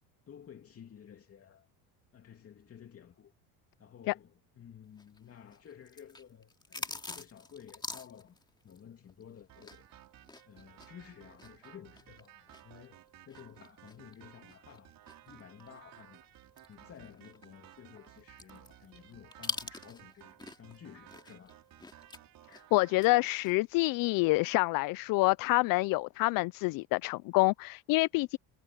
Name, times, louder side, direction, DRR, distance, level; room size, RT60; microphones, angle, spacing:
voice 1, 0.3-1.7 2.1-3.3 3.8-8.4 8.6-9.9 10.5-14.9 15.3-16.2 16.7-21.6, left 8 dB, 35° left, 2.7 m, -53 dB
eating cheese and crackers carolyn, 5.0-9.9 10.2-15.8 16.1-16.2 16.6-20.8 21.1-23.1 23.4-23.6, left 2 dB, 10° left, 2.4 m, -44 dB
sound 1, 9.5-23.2, right 13 dB, 55° right, 4.7 m, -57 dB
voice 2, 22.7-28.4, left 22 dB, 55° left, 0.5 m, -27 dB
cardioid pair, 120°, 41 cm